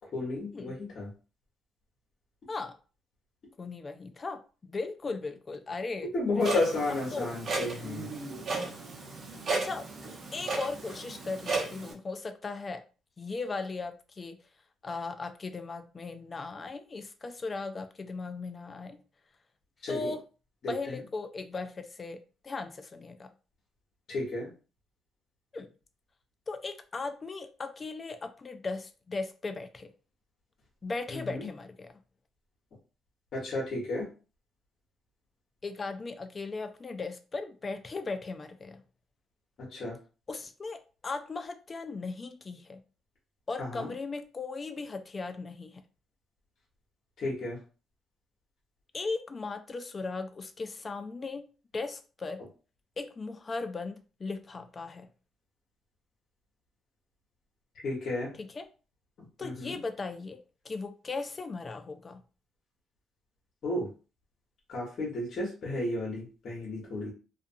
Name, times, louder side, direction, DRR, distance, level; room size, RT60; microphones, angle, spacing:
voice 1, 0.1-1.1 6.1-8.1 19.8-20.1 20.6-21.0 24.1-24.5 31.1-31.5 33.3-34.1 39.6-40.0 43.6-43.9 47.2-47.6 57.8-58.3 59.4-59.8 63.6-63.9 64.7-67.1, left 2 dB, 60° left, 1.1 m, -32 dB
voice 2, 3.6-6.6 7.1-7.3 9.5-9.9 10.3-12.8 13.2-14.4 14.8-19.0 19.9-20.2 20.7-23.3 25.5-25.7 26.5-29.9 30.8-31.9 35.6-38.8 40.3-42.8 43.5-45.8 48.9-51.5 51.7-52.4 53.0-55.1 58.4-58.7 59.4-60.4 60.6-62.2, left 3 dB, 35° left, 0.4 m, -37 dB
Clock, 6.4-11.9, right 3 dB, 50° right, 0.8 m, -35 dB
2.5 x 2.4 x 2.6 m
cardioid pair, 90°, 0 cm